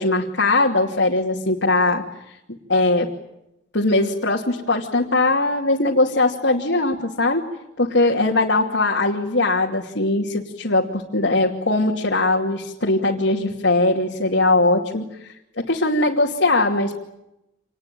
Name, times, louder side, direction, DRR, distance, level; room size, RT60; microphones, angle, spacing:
voice 1, 0.0-2.0 2.7-3.1 3.7-7.5 7.8-17.0, left 2 dB, 70° left, -1 dB, 2.6 m, -20 dB
27.5 x 20.0 x 9.2 m, 0.86 s
head